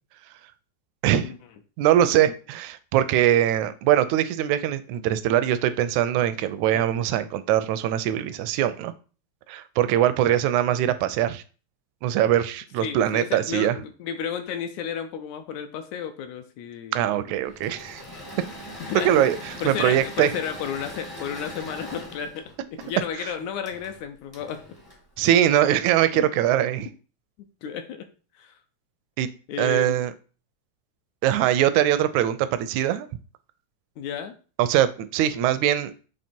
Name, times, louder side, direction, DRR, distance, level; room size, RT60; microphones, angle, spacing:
voice 1, 1.0-1.3 1.8-8.9 9.5-11.4 12.0-13.8 16.9-18.0 19.0-20.3 25.2-26.9 29.2-29.3 29.6-30.1 31.2-33.1 34.6-35.9, right 11 dB, 80° right, 1.9 m, -22 dB
voice 2, 12.8-17.3 18.8-19.3 19.6-22.5 22.8-24.6 26.1-26.4 27.6-28.1 28.4-28.6 29.5-30.1 34.0-34.3, left 8 dB, 80° left, 2.0 m, -33 dB
Engine / Mechanisms, 17.4-25.8, equal, 20° left, 0.6 m, -41 dB
7.5 x 3.2 x 4.4 m
omnidirectional pair, 3.4 m